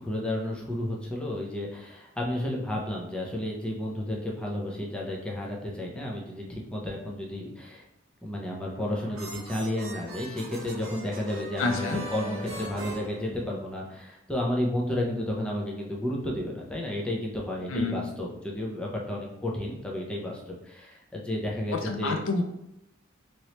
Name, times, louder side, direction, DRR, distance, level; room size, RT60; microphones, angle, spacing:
voice 1, 0.0-7.8 8.2-22.2, left 1 dB, 5° left, -3 dB, 0.5 m, -32 dB
sound 1, 8.6-13.9, right 1 dB, 75° right, 0.8 m, -40 dB
voice 2, 11.6-12.1 17.7-18.1 21.7-22.4, left 3 dB, 70° left, 4 dB, 0.5 m, -28 dB
3.1 x 2.9 x 2.8 m, 0.82 s
head